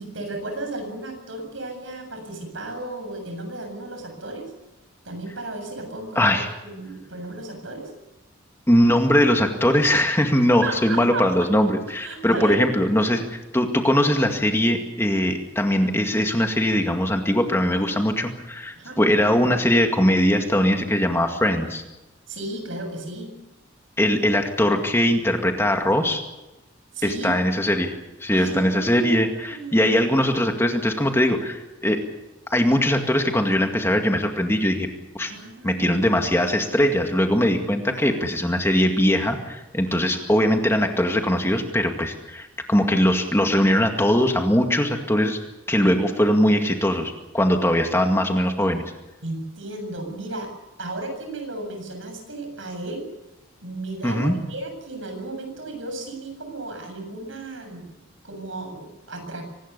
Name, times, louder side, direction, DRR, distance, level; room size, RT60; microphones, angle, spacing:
voice 1, 0.0-4.5 5.0-7.9 10.6-11.5 12.0-12.6 18.8-19.0 22.3-23.3 26.9-27.5 28.4-29.1 29.5-30.0 35.2-36.1 37.9-38.3 39.9-40.0 45.8-45.9 49.2-50.5 50.8-53.1 53.6-57.9 58.2-59.4, right 2 dB, 80° right, 5 dB, 7.6 m, -34 dB
voice 2, 6.2-6.5 8.7-21.8 24.0-26.2 27.0-27.9 28.2-32.0 32.5-34.9 35.1-35.3 35.6-45.4 45.7-48.8 54.0-54.4, equal, 10° left, 4 dB, 2.1 m, -21 dB
24.5 x 19.5 x 6.9 m, 0.98 s
head